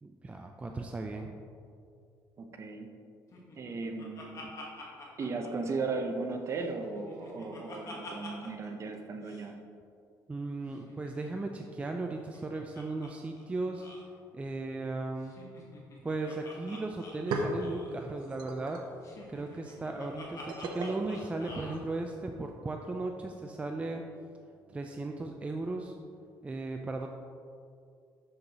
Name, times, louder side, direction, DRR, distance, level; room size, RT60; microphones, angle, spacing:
voice 1, 0.0-1.4 10.3-13.9 14.3-15.4 16.0-18.9 19.3-24.0 24.7-26.0 26.4-27.1, right 2 dB, 15° right, 3 dB, 0.4 m, -36 dB
voice 2, 2.4-2.9 3.6-4.5 5.2-9.6, right 3 dB, 40° right, 4 dB, 0.7 m, -36 dB
Laughter, 3.3-6.2 6.6-8.7 8.9-9.0 9.2-9.5 10.7-13.1 13.4-13.5 13.7-14.1 15.2-18.0 19.0-21.8, left 2 dB, 45° left, 1.3 m, -48 dB
sound 1, 17.1-22.2, right 2 dB, 75° right, 0.8 m, -39 dB
7.1 x 6.5 x 2.9 m, 2.4 s
cardioid pair, 110°, 8 cm